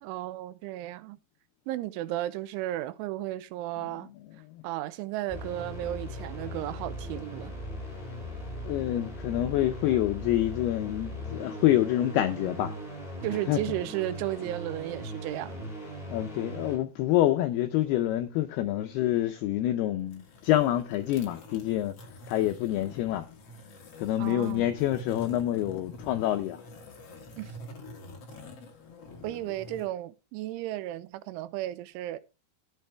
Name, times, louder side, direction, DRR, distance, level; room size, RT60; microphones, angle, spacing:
voice 1, 0.0-1.2 1.7-4.1 4.6-7.5 13.2-15.6 24.2-24.7 27.4-27.5 29.2-32.2, right 14 dB, 90° right, 3.2 m, -34 dB
sound 1, 5.3-16.8, equal, 10° left, 6.7 m, -39 dB
voice 2, 8.7-12.7 13.5-13.6 16.1-22.0 22.3-23.3 24.0-26.6, left 13 dB, 85° left, 2.3 m, -27 dB
sound 2, 20.0-29.9, left 2 dB, 50° left, 1.8 m, -46 dB
12.0 x 9.7 x 3.4 m
omnidirectional pair, 5.4 m